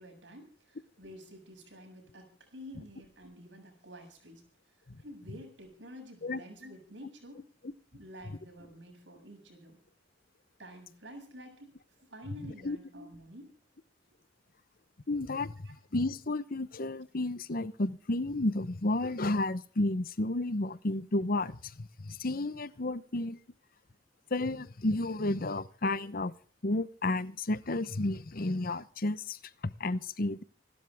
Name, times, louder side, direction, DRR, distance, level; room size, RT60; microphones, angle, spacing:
voice 1, 0.0-4.5 5.0-9.8 10.6-11.8 12.0-13.6 15.6-15.7, equal, 85° right, 7.3 m, -50 dB
voice 2, 15.1-15.5 15.9-23.4 24.3-26.3 26.6-29.4 29.6-30.4, left 2 dB, 55° left, 0.9 m, -32 dB
27.5 x 12.5 x 3.6 m
head